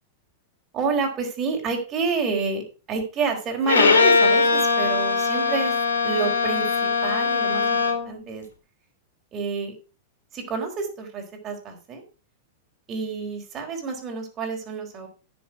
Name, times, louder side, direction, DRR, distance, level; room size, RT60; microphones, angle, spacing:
voice 1, 0.7-2.6 2.9-5.8 6.0-7.8 8.0-8.4 9.3-9.7 10.3-12.0 12.9-15.1, right 5 dB, 35° right, 2 dB, 4.5 m, -28 dB
Bowed string instrument, 3.6-8.2, left 4 dB, 85° left, 2.4 m, -21 dB
10.5 x 7.0 x 6.0 m, 0.35 s
hypercardioid pair, 100°, 0 cm